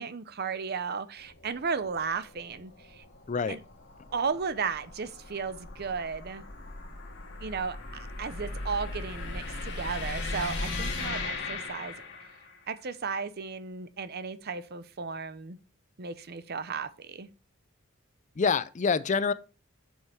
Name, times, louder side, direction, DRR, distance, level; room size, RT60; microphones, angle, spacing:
voice 1, 0.0-3.0 3.5-3.6 4.1-6.4 7.4-11.9 12.7-15.6 16.0-17.3, right 5 dB, 45° right, 0.6 m, -34 dB
sound 1, 1.2-12.6, left 3 dB, 55° left, 2.0 m, -38 dB
voice 2, 18.4-19.3, left 5 dB, 35° left, 0.4 m, -26 dB
7.7 x 5.5 x 4.4 m
head